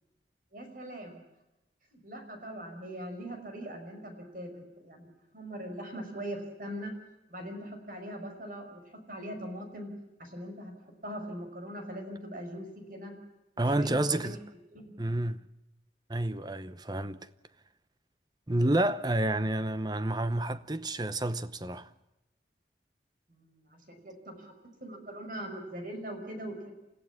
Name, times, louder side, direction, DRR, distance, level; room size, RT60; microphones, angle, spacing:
voice 1, 0.5-1.2 1.9-5.1 5.3-6.9 7.3-9.9 10.2-13.1 13.7-14.4 14.7-14.9 23.3-24.5 24.8-26.7, equal, 50° right, 5.5 m, -41 dB
voice 2, 13.6-14.4 15.0-15.4 16.1-17.2 18.5-21.9, right 1 dB, 25° right, 0.8 m, -29 dB
29.5 x 15.5 x 7.2 m
head